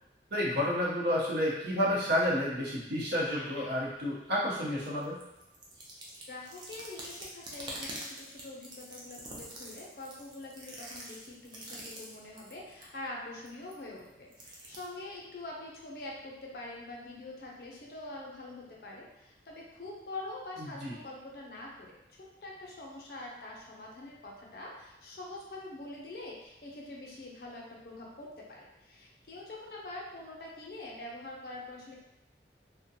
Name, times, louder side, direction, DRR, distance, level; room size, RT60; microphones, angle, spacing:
voice 1, 0.3-5.2 20.6-20.9, equal, 70° right, -6 dB, 0.8 m, -30 dB
sound 1, 3.3-3.7 4.3-4.4 4.7-12.9 13.5-14.8, right 1 dB, 25° right, 0.4 m, -45 dB
voice 2, 6.3-21.9 22.2-32.0, left 2 dB, 60° left, -3 dB, 0.5 m, -45 dB
2.4 x 2.1 x 2.7 m, 0.92 s
head